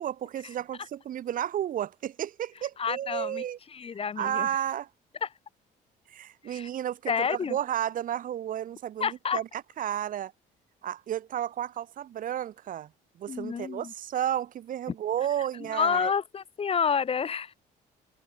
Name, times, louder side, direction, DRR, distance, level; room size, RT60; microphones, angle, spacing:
voice 1, 0.0-3.6 4.2-4.9 6.1-10.3 10.8-12.9 13.2-16.1, right 11 dB, 55° right, 1.2 m, -32 dB
voice 2, 2.8-3.4 3.7-4.5 5.2-5.3 6.4-6.7 7.1-7.6 9.0-9.4 13.3-13.9 15.7-17.5, left 6 dB, 35° left, 1.9 m, -29 dB
cardioid pair, 110°, 17 cm